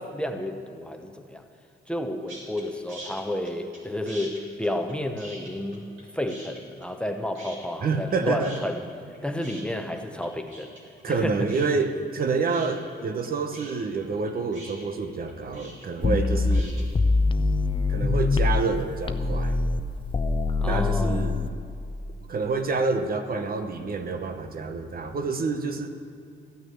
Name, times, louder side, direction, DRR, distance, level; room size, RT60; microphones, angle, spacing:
voice 1, 0.0-1.4 1.9-8.9 9.2-10.7 11.1-11.5 20.6-21.2, left 1 dB, 5° left, 5 dB, 0.9 m, -31 dB
sound 1, 2.3-2.6 2.9-3.8 4.1-6.0 6.3-7.1 7.4-8.1 8.4-16.8, right 1 dB, 85° right, 3.2 m, -44 dB
voice 2, 7.8-8.6 11.0-16.7 17.9-19.6 20.6-21.4 22.3-25.9, right 4 dB, 45° right, 7 dB, 0.9 m, -28 dB
sound 2, 16.0-18.8 19.1-21.5, left 3 dB, 25° left, 0.6 m, -24 dB
14.5 x 6.2 x 9.7 m, 2.4 s
cardioid pair, 90°, 20 cm